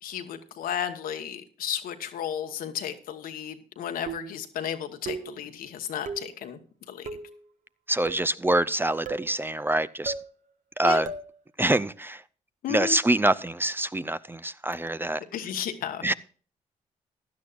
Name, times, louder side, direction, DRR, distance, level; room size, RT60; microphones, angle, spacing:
voice 1, 0.0-6.6 6.9-7.1 10.8-11.0 12.6-13.0 15.3-16.1, left 9 dB, 80° left, 7 dB, 1.2 m, -33 dB
sound 1, 4.1-4.5 5.0-5.4 6.0-6.4 7.0-7.4 8.1-8.4 9.0-9.3 10.0-10.3 11.0-11.3, right 4 dB, 60° right, 1.3 m, -37 dB
voice 2, 7.9-10.1 10.8-11.1 11.6-12.2 12.7-15.2 16.0-16.1, right 1 dB, 15° right, 15 dB, 0.5 m, -25 dB
15.5 x 11.0 x 2.5 m, 0.41 s
supercardioid pair, 55°, 15 cm